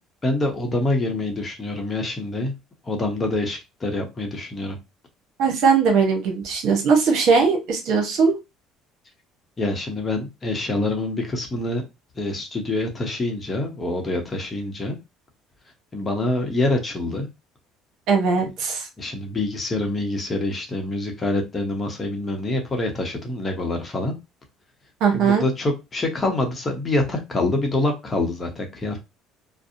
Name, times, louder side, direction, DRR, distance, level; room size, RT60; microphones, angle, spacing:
voice 1, 0.2-2.5 2.8-4.8 9.6-11.9 12.1-15.0 15.9-17.3 19.0-24.1 25.1-29.0, left 2 dB, 30° left, 3 dB, 0.8 m, -26 dB
voice 2, 5.4-8.3 18.1-18.9 25.0-25.4, right 5 dB, 70° right, 3 dB, 0.8 m, -19 dB
2.6 x 2.0 x 2.5 m, 0.24 s
supercardioid pair, 90°, 0 cm